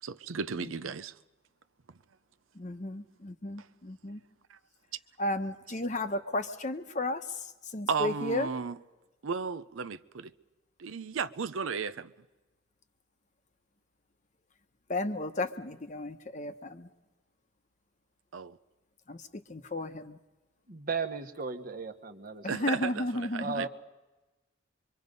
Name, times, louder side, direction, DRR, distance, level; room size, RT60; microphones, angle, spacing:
voice 1, 0.0-1.2 4.5-4.6 7.9-8.8 9.2-10.3 10.8-12.1 18.3-18.6 22.5-23.7, right 5 dB, 85° right, 0.6 m, -34 dB
voice 2, 2.5-4.2 5.2-8.5 14.9-16.9 19.1-20.2 22.4-23.7, left 2 dB, 35° left, 1.0 m, -34 dB
voice 3, 20.7-22.5 23.4-23.7, right 5 dB, 45° right, 1.2 m, -35 dB
25.0 x 24.0 x 5.3 m
head